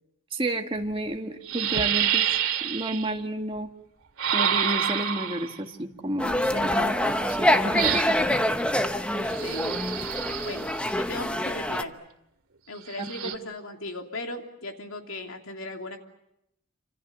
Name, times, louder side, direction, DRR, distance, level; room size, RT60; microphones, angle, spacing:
voice 1, 0.3-2.3 2.6-3.7 4.3-8.2 13.0-13.3, right 1 dB, 25° right, 3 dB, 1.8 m, -31 dB
sound 1, 0.8-0.9 1.5-3.1 4.2-5.6 7.8-8.3 9.3-10.7 12.9-13.3, right 9 dB, 85° right, 2.0 m, -27 dB
sound 2, 6.2-11.8, left 1 dB, 5° left, 1.0 m, -25 dB
voice 2, 6.7-7.2 9.1-9.8 10.4-11.9 12.7-16.0, left 1 dB, 75° left, 3 dB, 3.1 m, -37 dB
28.0 x 27.0 x 6.9 m, 0.84 s
head